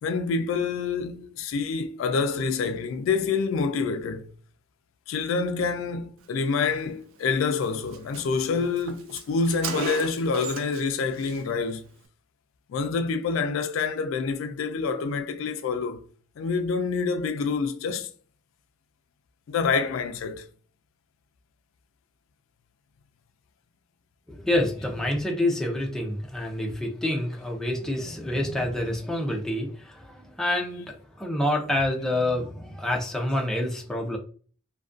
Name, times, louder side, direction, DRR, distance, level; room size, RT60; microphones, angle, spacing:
voice 1, 0.0-4.3 5.1-11.8 12.7-16.0 16.4-18.1 19.5-20.5, left 4 dB, 75° left, 0.3 m, -27 dB
Car, 7.2-7.4 7.6-7.7 7.9-10.9 11.1-11.4, right 6 dB, 75° right, 0.4 m, -36 dB
voice 2, 24.3-34.2, left 1 dB, 5° left, 0.4 m, -27 dB
2.3 x 2.2 x 2.4 m
head